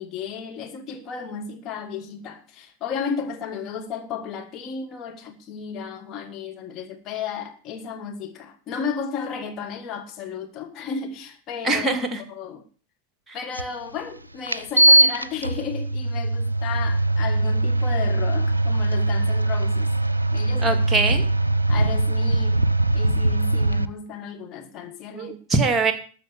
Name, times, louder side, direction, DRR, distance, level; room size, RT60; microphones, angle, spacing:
voice 1, 0.0-11.9 12.3-12.6 13.3-19.9 20.3-20.8 21.7-22.6 22.9-25.4, left 6 dB, 35° left, 1.5 m, -33 dB
voice 2, 11.6-12.2 20.6-21.2 25.1-25.9, right 3 dB, 15° right, 2.2 m, -22 dB
sound 1, 13.5-13.6 14.5-23.9, right 2 dB, 80° right, 0.5 m, -21 dB
13.5 x 6.3 x 8.6 m
figure-of-eight pair, 90°, 0 cm